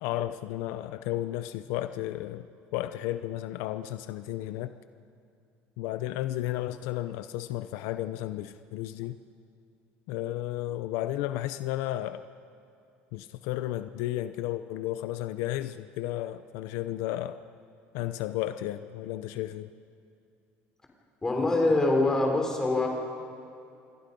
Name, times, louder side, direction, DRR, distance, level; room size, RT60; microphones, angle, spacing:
voice 1, 0.0-2.5 2.7-4.7 5.8-9.2 10.1-12.2 13.1-17.4 17.9-19.7, left 14 dB, 75° left, 11 dB, 0.7 m, -33 dB
voice 2, 21.2-22.9, left 2 dB, 15° left, 1 dB, 3.8 m, -24 dB
27.0 x 21.5 x 5.4 m, 2.5 s
cardioid pair, 155°, 5 cm